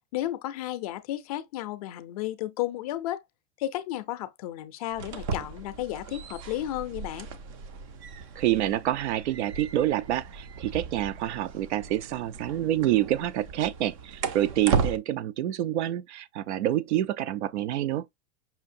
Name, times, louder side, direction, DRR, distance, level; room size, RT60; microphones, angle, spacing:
voice 1, 0.1-3.2 3.6-7.3, left 14 dB, 35° left, 0.4 m, -33 dB
sound 1, 4.9-15.0, right 5 dB, 30° right, 0.4 m, -35 dB
voice 2, 8.4-18.0, right 13 dB, 80° right, 0.5 m, -27 dB
5.6 x 2.6 x 2.6 m
supercardioid pair, 165°, 34 cm